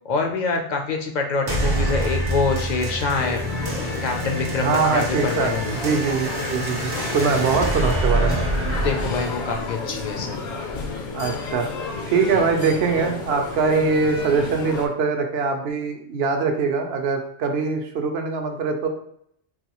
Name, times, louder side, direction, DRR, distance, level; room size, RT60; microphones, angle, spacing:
voice 1, 0.0-3.4 4.0-5.6 8.8-10.5, left 4 dB, 55° left, 3 dB, 0.5 m, -25 dB
sound 1, 1.5-10.5, right 1 dB, 30° right, 0.4 m, -27 dB
sound 2, 3.1-14.9, left 3 dB, 70° left, 0.9 m, -31 dB
voice 2, 4.6-8.5 11.1-11.7 12.1-18.9, right 4 dB, 70° right, 4 dB, 0.8 m, -23 dB
4.0 x 2.3 x 2.9 m, 0.70 s
omnidirectional pair, 1.2 m